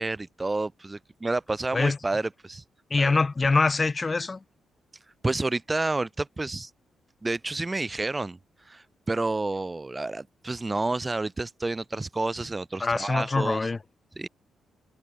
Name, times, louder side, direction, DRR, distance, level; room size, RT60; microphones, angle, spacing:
voice 1, 0.0-2.6 3.0-3.1 5.2-6.7 7.2-8.4 8.7-13.7 14.2-14.3, right 2 dB, 20° right, 7.0 m, -29 dB
voice 2, 2.9-4.4 12.8-13.8, left 3 dB, 25° left, 5.3 m, -24 dB
cardioid pair, 105°, 0 cm